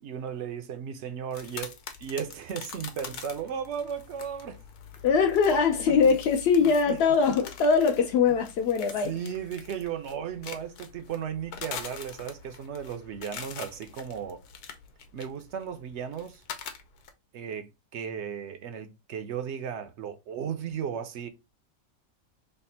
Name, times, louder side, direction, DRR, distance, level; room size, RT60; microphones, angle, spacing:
voice 1, 0.0-4.6 5.8-6.2 6.6-7.0 9.0-14.4 15.1-16.4 17.3-21.3, right 8 dB, 65° right, 0.7 m, -35 dB
sound 1, 1.3-17.1, left 7 dB, 85° left, 1.2 m, -44 dB
voice 2, 5.0-9.1, left 5 dB, 65° left, 0.6 m, -22 dB
3.4 x 2.5 x 4.1 m
omnidirectional pair, 1.6 m